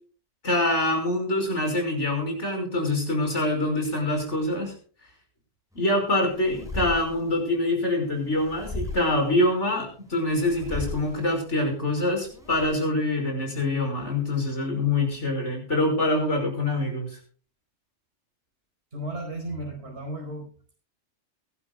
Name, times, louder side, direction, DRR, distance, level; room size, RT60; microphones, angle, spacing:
voice 1, 0.4-4.7 5.8-17.2, left 2 dB, 85° left, 3 dB, 5.7 m, -25 dB
sound 1, 5.7-12.7, left 2 dB, 5° right, 6.4 m, -38 dB
voice 2, 18.9-20.5, right 1 dB, 65° right, 0 dB, 5.5 m, -34 dB
22.5 x 12.0 x 2.3 m, 0.40 s
omnidirectional pair, 1.2 m